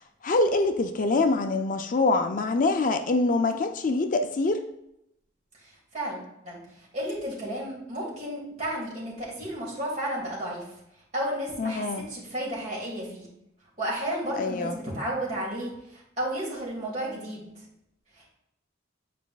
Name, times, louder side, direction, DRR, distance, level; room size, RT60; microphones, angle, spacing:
voice 1, 0.2-4.6 11.6-12.1 14.4-14.8, left 3 dB, 45° left, 7 dB, 0.4 m, -25 dB
voice 2, 5.9-10.6 11.1-13.3 13.8-17.5, right 1 dB, 40° right, -5 dB, 2.5 m, -33 dB
9.1 x 4.9 x 2.4 m, 0.81 s
head